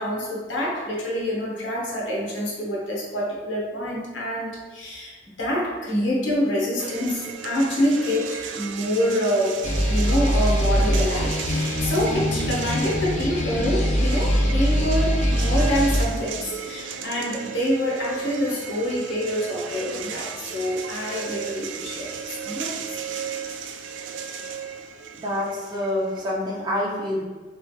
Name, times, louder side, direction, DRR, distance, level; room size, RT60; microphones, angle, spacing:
voice 1, 0.0-9.6 9.9-23.0, equal, 80° left, -4 dB, 1.1 m, -26 dB
sound 1, 6.8-26.3, right 7 dB, 80° right, 0.3 m, -35 dB
sound 2, 9.6-16.1, equal, 40° left, 0.5 m, -22 dB
voice 2, 25.2-27.2, left 1 dB, 25° right, -5 dB, 0.9 m, -26 dB
3.5 x 3.2 x 3.2 m, 1.4 s
head